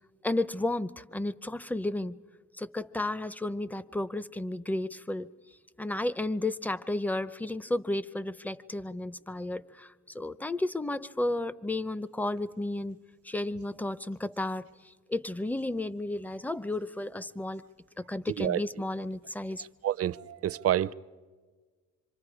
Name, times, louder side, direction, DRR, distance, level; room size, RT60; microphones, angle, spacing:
voice 1, 0.2-2.2 2.6-5.3 5.8-13.0 13.2-14.7 15.1-17.6 18.0-19.6, left 2 dB, 5° left, 0.6 m, -32 dB
voice 2, 19.6-20.9, right 11 dB, 50° right, 0.6 m, -29 dB
26.5 x 25.5 x 4.9 m
cardioid pair, 90°, 30 cm